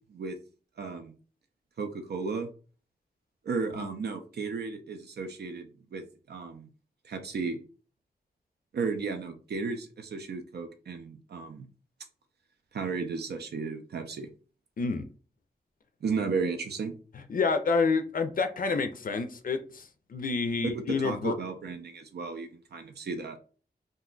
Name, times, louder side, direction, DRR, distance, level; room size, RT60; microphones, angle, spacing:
voice 1, 0.8-1.1 1.8-2.5 3.5-6.7 7.0-7.6 8.7-11.7 12.7-14.3 16.0-16.9 20.6-23.4, right 4 dB, 90° right, 6 dB, 0.5 m, -34 dB
voice 2, 17.1-21.4, left 4 dB, 60° left, 8 dB, 0.4 m, -29 dB
2.5 x 2.2 x 3.7 m, 0.37 s
wide cardioid pair, 100°, 16 cm